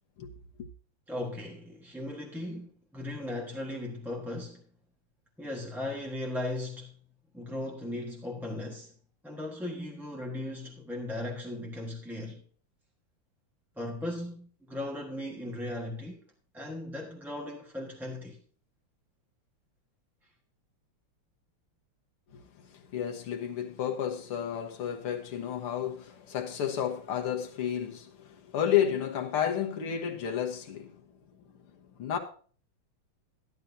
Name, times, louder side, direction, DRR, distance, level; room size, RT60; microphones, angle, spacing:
voice 1, 1.1-4.6 5.4-7.0 7.3-8.9 9.2-12.4 13.8-16.2 16.5-18.4, left 1 dB, ahead, 0.9 m, -37 dB
voice 2, 22.3-31.0 31.5-32.2, left 9 dB, 80° left, 2.2 m, -32 dB
12.0 x 12.0 x 2.7 m
omnidirectional pair, 2.4 m